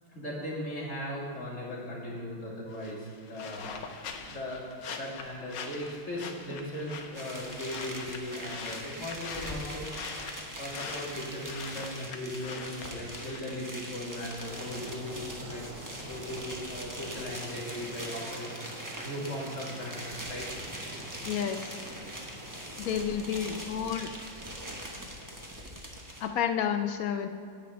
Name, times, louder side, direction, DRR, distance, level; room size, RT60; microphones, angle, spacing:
voice 1, 0.1-3.7 4.3-9.9 10.6-15.6 16.0-20.5 20.8-20.9, left 1 dB, 35° left, -5 dB, 3.0 m, -38 dB
sound 1, 2.7-13.4, left 5 dB, 60° left, 1.0 m, -43 dB
sound 2, 7.1-26.3, right 1 dB, 15° right, 0.7 m, -42 dB
sound 3, 14.4-25.7, equal, 60° right, 3.0 m, -47 dB
voice 2, 21.2-21.7 22.8-24.1 26.2-27.3, left 8 dB, 80° left, 7 dB, 0.8 m, -30 dB
10.0 x 9.0 x 5.0 m, 2.3 s
omnidirectional pair, 2.3 m